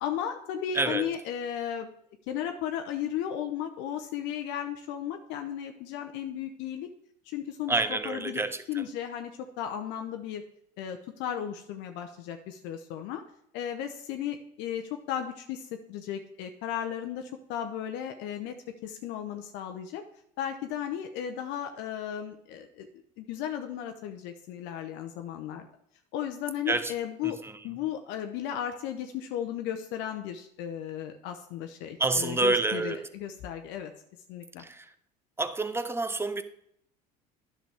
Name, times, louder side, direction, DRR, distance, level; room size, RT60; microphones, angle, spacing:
voice 1, 0.0-1.9 2.3-6.9 7.3-8.4 8.7-10.4 10.8-13.2 13.5-18.6 18.8-20.0 20.4-22.9 23.2-25.7 26.1-27.4 27.6-33.9 34.3-34.6, left 9 dB, 65° left, 6 dB, 0.7 m, -35 dB
voice 2, 0.7-1.1 7.7-8.8 26.7-26.9 27.2-27.3 32.0-33.0 34.6-34.9 35.4-36.4, right 3 dB, 10° right, 12 dB, 0.6 m, -28 dB
10.0 x 6.0 x 3.4 m, 0.70 s
hypercardioid pair, 80°, 20 cm